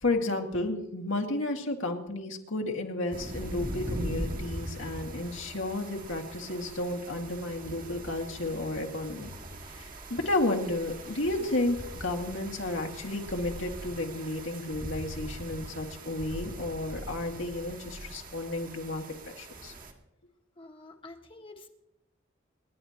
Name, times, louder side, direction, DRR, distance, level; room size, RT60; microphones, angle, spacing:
voice 1, 0.0-9.3 9.8-19.0 19.4-19.7, left 2 dB, 70° left, 2 dB, 2.0 m, -32 dB
sound 1, 3.1-19.9, right 1 dB, 45° right, 2.0 m, -41 dB
voice 2, 20.6-21.7, left 2 dB, 25° left, 4 dB, 1.5 m, -48 dB
29.0 x 11.5 x 2.9 m, 0.85 s
head